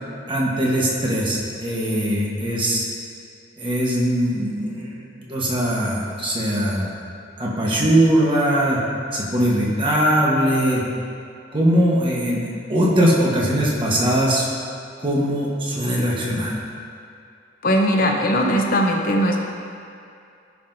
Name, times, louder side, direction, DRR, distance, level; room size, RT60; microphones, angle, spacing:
voice 1, 0.3-2.9 3.6-6.9 7.4-8.8 9.1-10.8 11.5-14.4 15.0-16.5, equal, 25° right, -4 dB, 1.2 m, -21 dB
voice 2, 17.6-19.4, equal, 45° left, 1 dB, 0.8 m, -19 dB
13.5 x 5.8 x 2.7 m, 2.5 s
head